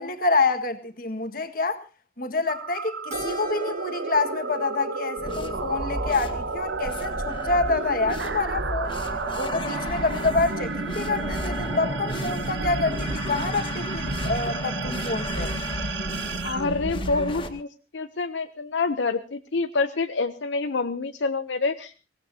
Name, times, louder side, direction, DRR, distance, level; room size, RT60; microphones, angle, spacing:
voice 1, 0.0-1.8 2.2-9.0 9.3-15.5, left 3 dB, 50° left, 1.7 m, -27 dB
sound 1, 2.5-17.6, right 4 dB, 75° right, 0.9 m, -32 dB
Keyboard (musical), 3.1-7.7, right 2 dB, 40° right, 6.0 m, -44 dB
sound 2, 5.2-17.5, left 1 dB, 25° left, 2.0 m, -34 dB
voice 2, 16.4-17.7 17.9-21.9, left 3 dB, 75° left, 0.7 m, -27 dB
23.5 x 18.0 x 2.8 m
head